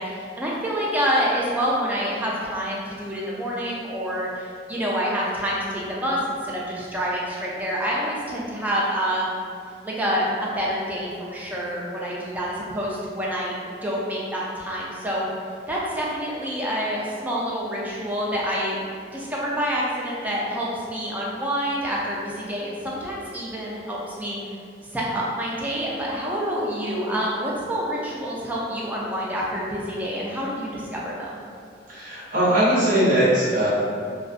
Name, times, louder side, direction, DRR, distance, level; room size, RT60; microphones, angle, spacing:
voice 1, 0.0-9.4 9.8-15.3 15.7-18.8 19.1-24.4 24.9-31.4, equal, 10° right, -5 dB, 0.4 m, -27 dB
voice 2, 31.9-33.7, right 1 dB, 50° right, -11 dB, 0.9 m, -20 dB
2.5 x 2.2 x 2.4 m, 2.2 s
head